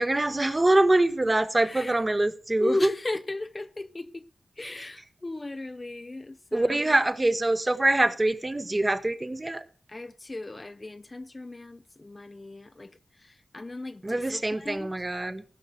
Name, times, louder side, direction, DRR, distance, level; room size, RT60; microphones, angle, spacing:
voice 1, 0.0-2.9 4.6-4.9 6.5-9.6 14.0-15.4, right 2 dB, 25° right, 1.2 m, -24 dB
voice 2, 1.6-1.9 2.6-4.3 4.6-6.9 9.9-14.9, left 2 dB, 35° left, 0.6 m, -36 dB
15.0 x 6.3 x 6.4 m
cardioid pair, 55°, 0 cm